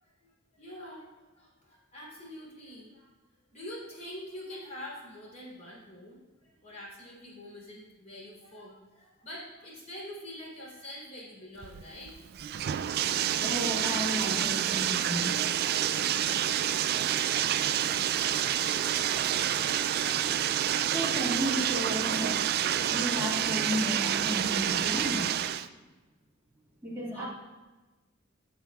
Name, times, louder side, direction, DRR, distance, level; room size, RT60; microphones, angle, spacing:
voice 1, 0.0-3.1 3.5-12.5 27.1-27.3, left 1 dB, 35° left, -5 dB, 3.1 m, -45 dB
Bathtub (filling or washing), 11.6-25.7, right 10 dB, 50° right, 0.3 m, -28 dB
voice 2, 13.4-15.3 20.9-22.5 22.9-25.3 26.8-27.3, equal, 10° right, -6 dB, 1.7 m, -33 dB
14.5 x 6.9 x 2.3 m, 1.2 s
head